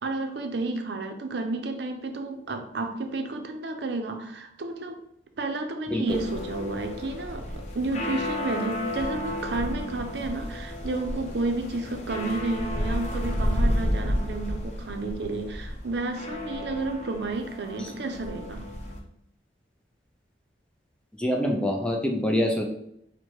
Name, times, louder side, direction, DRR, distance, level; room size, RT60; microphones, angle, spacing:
voice 1, 0.0-5.0 5.4-18.6, right 2 dB, 70° right, 5 dB, 0.6 m, -31 dB
voice 2, 5.9-6.2 21.2-22.6, left 1 dB, 5° left, 2 dB, 0.4 m, -25 dB
sound 1, 6.1-19.0, left 1 dB, 40° left, 0.7 m, -31 dB
4.5 x 2.2 x 4.5 m, 0.76 s
head